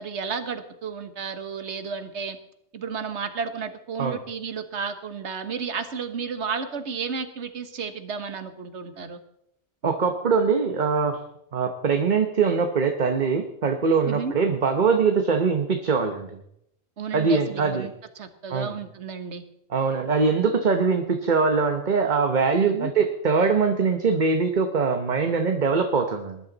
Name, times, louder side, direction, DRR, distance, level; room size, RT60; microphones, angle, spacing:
voice 1, 0.0-2.4 2.7-9.2 14.1-14.3 17.0-19.4 22.6-22.9, right 5 dB, 75° right, 9 dB, 1.5 m, -32 dB
voice 2, 9.8-11.2 11.5-16.3 17.1-17.9 18.5-18.8 19.7-26.4, right 5 dB, 45° right, 5 dB, 1.1 m, -22 dB
20.0 x 11.0 x 4.0 m, 0.77 s
omnidirectional pair, 1.2 m